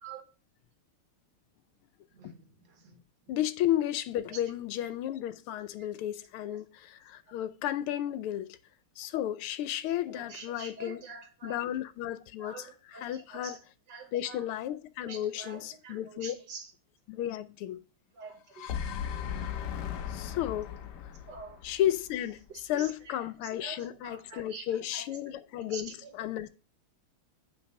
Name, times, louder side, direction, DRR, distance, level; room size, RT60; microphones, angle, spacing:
voice 1, 2.1-3.0 4.3-4.4 6.4-6.6 10.1-11.6 12.4-13.6 13.9-14.4 15.0-16.7 18.2-18.7 21.3-21.6 22.7-23.1 23.6-24.6 24.9-25.1 25.7-26.1, right 4 dB, 55° right, 1.8 m, -46 dB
voice 2, 3.3-8.6 9.0-11.0 11.4-13.6 14.1-16.4 17.1-17.8 20.1-20.7 21.6-26.5, left 12 dB, 85° left, 1.5 m, -33 dB
sound 1, 18.3-22.5, left 8 dB, 65° left, 1.2 m, -37 dB
9.2 x 4.0 x 5.2 m
omnidirectional pair, 2.4 m